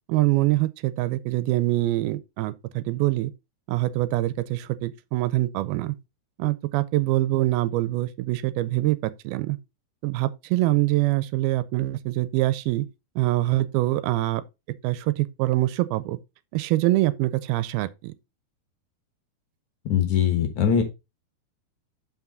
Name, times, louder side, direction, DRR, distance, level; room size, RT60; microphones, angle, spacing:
voice 1, 0.1-3.3 3.7-5.9 6.4-9.6 10.0-12.9 13.2-14.4 14.8-16.2 16.5-18.1, right 17 dB, 90° right, 2.5 m, -24 dB
voice 2, 19.9-20.8, left 8 dB, 60° left, 2.4 m, -21 dB
7.2 x 5.8 x 4.0 m
omnidirectional pair, 4.3 m